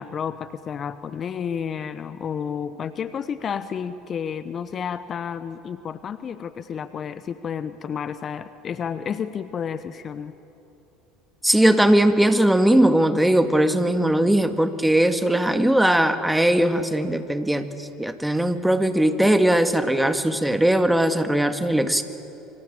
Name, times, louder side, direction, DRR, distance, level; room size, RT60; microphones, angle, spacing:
voice 1, 0.0-10.3, left 7 dB, 40° left, 13 dB, 1.0 m, -31 dB
voice 2, 11.4-17.7 18.0-22.0, right 1 dB, 5° right, 8 dB, 1.9 m, -19 dB
27.5 x 24.0 x 8.8 m, 2.8 s
figure-of-eight pair, 65°, 0 cm